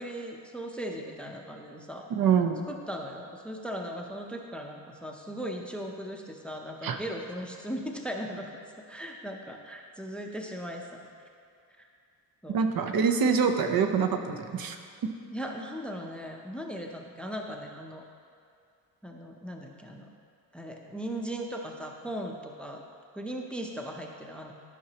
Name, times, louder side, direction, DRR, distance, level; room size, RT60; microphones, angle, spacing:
voice 1, 0.0-2.1 2.7-10.9 11.8-11.9 12.4-12.6 15.3-18.0 19.0-20.1 20.5-22.8 23.1-24.5, equal, 5° left, 1 dB, 0.6 m, -38 dB
voice 2, 2.1-2.6 6.8-7.0 12.5-14.8, right 6 dB, 55° right, 6 dB, 0.8 m, -25 dB
13.0 x 5.8 x 2.9 m, 2.5 s
cardioid pair, 115°, 41 cm